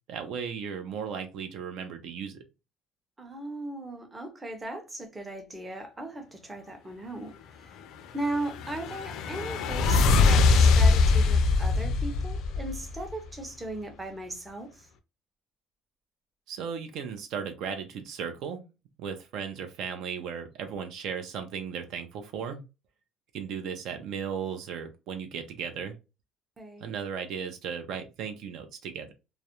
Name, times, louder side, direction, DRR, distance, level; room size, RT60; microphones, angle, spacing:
voice 1, 0.1-2.4 16.5-18.6 19.0-22.6 23.3-26.0 26.8-29.1, right 7 dB, 65° right, 0.5 m, -36 dB
voice 2, 3.2-7.8 8.1-14.9 26.6-26.9, right 1 dB, 15° right, 0.6 m, -37 dB
sound 1, 8.2-13.1, left 4 dB, 65° left, 0.4 m, -22 dB
2.3 x 2.0 x 2.8 m
cardioid pair, 145°, 0 cm